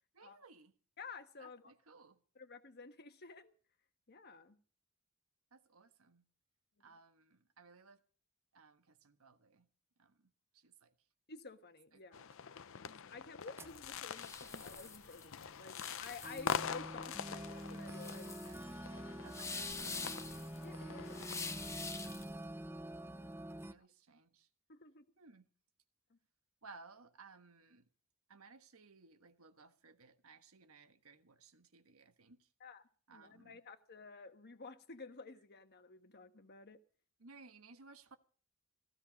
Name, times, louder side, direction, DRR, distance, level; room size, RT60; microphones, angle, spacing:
voice 1, 0.1-0.7 1.4-2.2 5.5-6.2 6.8-8.0 8.5-9.7 10.0-10.9 11.9-12.3 18.4-18.7 19.2-20.3 21.4-21.5 22.0-22.3 23.5-24.5 25.2-25.5 26.6-27.9 28.3-32.5 33.1-33.6 37.2-38.2, right 4 dB, 80° right, 1.4 m, -60 dB
voice 2, 1.0-1.7 2.3-3.5 4.1-4.6 11.3-12.2 12.8-18.3 20.6-21.6 22.8-23.5 24.7-25.0 26.1-26.2 32.6-32.8 33.1-36.8, left 4 dB, 50° left, 1.4 m, -52 dB
sound 1, 12.1-21.5, left 7 dB, 65° left, 0.6 m, -45 dB
sound 2, 12.3-12.4 13.5-13.8 14.3-14.4 15.5-15.6 16.2-23.7, right 1 dB, 10° right, 0.6 m, -47 dB
sound 3, 13.7-22.4, left 4 dB, 15° left, 1.0 m, -46 dB
15.5 x 15.5 x 5.2 m
head